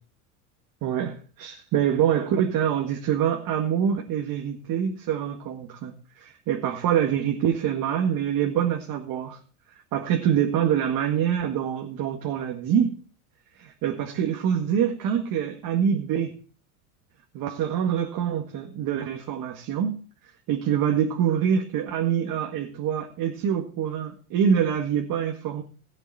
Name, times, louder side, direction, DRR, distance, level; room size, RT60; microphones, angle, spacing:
voice 1, 0.8-9.4 9.9-12.9 13.6-16.4 17.3-20.0 20.5-25.6, right 8 dB, 50° right, 1.9 m, -25 dB
17.5 x 8.1 x 4.3 m
supercardioid pair, 105°, 43 cm